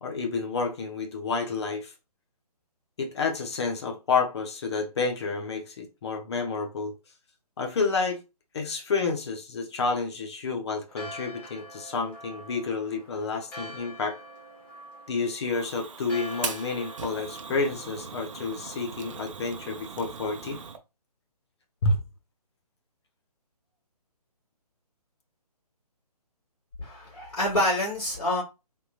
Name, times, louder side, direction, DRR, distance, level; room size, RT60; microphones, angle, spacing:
voice 1, 0.0-1.9 3.0-6.9 7.6-8.2 8.5-14.2 15.1-20.6 21.8-22.0, left 4 dB, 40° left, 0.8 m, -29 dB
Church bell, 10.9-19.8, left 1 dB, 5° left, 0.4 m, -46 dB
Fire, 15.4-20.8, right 6 dB, 50° right, 0.6 m, -39 dB
voice 2, 26.8-28.4, left 1 dB, 60° left, 2.0 m, -27 dB
3.6 x 2.9 x 2.4 m
figure-of-eight pair, 140°, 20 cm